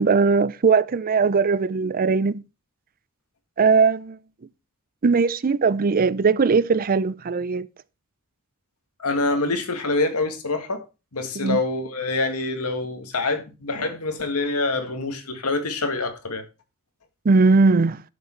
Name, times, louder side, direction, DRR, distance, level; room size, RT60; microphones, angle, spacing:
voice 1, 0.0-2.4 3.6-4.2 5.0-7.7 11.4-11.6 17.2-18.0, right 4 dB, 40° right, 0.5 m, -19 dB
voice 2, 9.0-10.8 11.1-16.4, left 3 dB, 85° left, 1.9 m, -26 dB
11.5 x 6.5 x 4.4 m
head